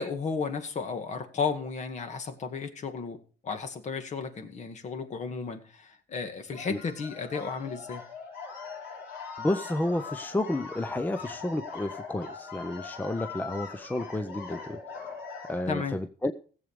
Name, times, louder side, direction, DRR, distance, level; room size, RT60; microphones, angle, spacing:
voice 1, 0.0-3.2 3.4-8.0 15.7-16.0, left 5 dB, 45° left, 8 dB, 2.0 m, -33 dB
sound 1, 6.5-15.6, left 5 dB, 80° left, 5.6 m, -41 dB
voice 2, 9.4-15.2 15.5-16.3, left 1 dB, 10° left, 9 dB, 0.7 m, -31 dB
16.0 x 7.8 x 5.1 m, 0.41 s
cardioid pair, 110°, 17 cm